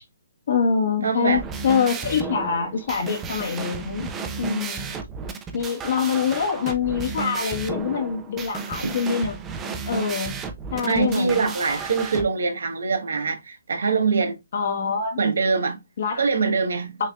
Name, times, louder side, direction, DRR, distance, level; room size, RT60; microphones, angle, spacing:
voice 1, 0.5-4.1 4.4-5.0 5.5-9.4 9.9-10.4 10.7-11.5 14.5-15.2 16.0-16.2 17.0-17.1, left 6 dB, 60° left, 1.3 m, -25 dB
voice 2, 1.0-1.4 10.9-14.4 15.2-15.8 16.2-17.0, right 4 dB, 75° right, 1.1 m, -23 dB
sound 1, 1.3-12.2, right 5 dB, 15° right, 0.6 m, -33 dB
6.3 x 2.7 x 2.3 m
hypercardioid pair, 155°, 0 cm